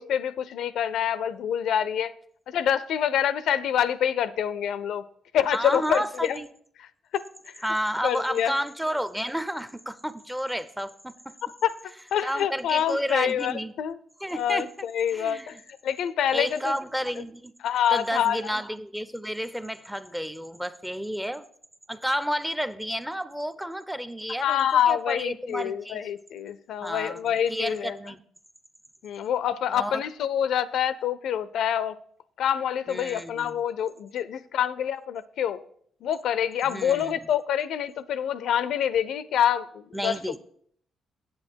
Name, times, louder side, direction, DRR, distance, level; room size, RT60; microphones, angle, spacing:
voice 1, 0.0-2.1 2.5-5.0 5.3-6.4 7.1-7.2 8.0-8.5 11.6-11.8 12.1-14.0 14.3-15.6 15.8-16.8 17.6-18.5 24.4-27.9 29.0-32.0 32.4-35.6 36.0-40.4, left 9 dB, 75° left, 0.4 m, -26 dB
voice 2, 5.5-6.5 7.6-11.4 12.2-13.7 14.2-14.7 15.1-15.5 16.3-17.5 17.9-21.5 21.9-26.1 26.8-28.2 29.7-30.0 32.9-33.6 36.6-37.2 39.9-40.4, equal, 5° right, 0.5 m, -31 dB
8.6 x 8.2 x 4.5 m
cardioid pair, 90°, 0 cm